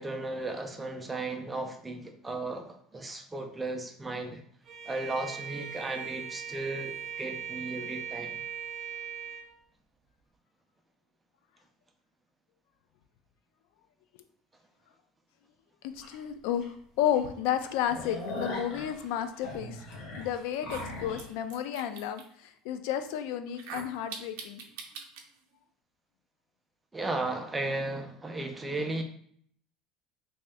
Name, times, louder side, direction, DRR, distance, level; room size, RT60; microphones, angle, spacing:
voice 1, 0.0-4.4 4.9-8.4 26.9-29.0, right 2 dB, 10° right, 5 dB, 0.4 m, -35 dB
Bowed string instrument, 4.7-9.5, right 8 dB, 35° right, 0.8 m, -39 dB
voice 2, 15.8-16.6 17.0-19.9 20.2-24.6, left 10 dB, 75° left, 10 dB, 0.4 m, -32 dB
sound 1, 16.0-16.1 16.6-16.7 17.0-17.2 17.5-21.3, left 2 dB, 50° left, 1.1 m, -39 dB
sound 2, 20.0-20.1 20.6-22.2 23.5-25.2, right 6 dB, 80° right, 0.6 m, -43 dB
3.1 x 2.8 x 3.4 m, 0.63 s
cardioid pair, 150°, 0 cm